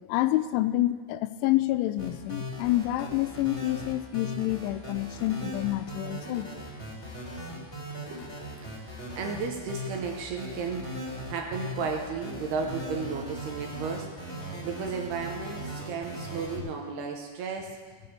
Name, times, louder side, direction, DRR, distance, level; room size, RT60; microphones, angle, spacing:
voice 1, 0.1-6.5 14.6-14.7, left 15 dB, 85° left, 11 dB, 2.9 m, -28 dB
sound 1, 2.0-16.6, equal, 15° left, 3.0 m, -38 dB
voice 2, 8.8-17.8, right 5 dB, 70° right, 2 dB, 2.6 m, -34 dB
17.5 x 7.6 x 6.8 m, 1.5 s
omnidirectional pair, 5.4 m